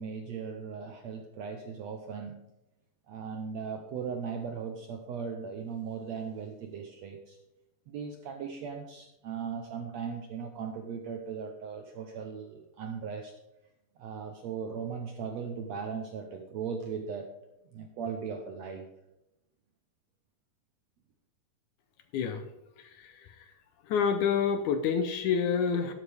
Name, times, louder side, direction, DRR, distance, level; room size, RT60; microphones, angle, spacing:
voice 1, 0.0-2.4 3.1-7.4 7.9-13.3 14.0-17.3 17.7-18.8, right 6 dB, 75° right, 4 dB, 1.6 m, -38 dB
voice 2, 22.1-22.5 22.8-23.5 23.9-25.9, left 6 dB, 75° left, 8 dB, 1.9 m, -28 dB
12.5 x 12.5 x 3.5 m, 0.92 s
omnidirectional pair, 4.1 m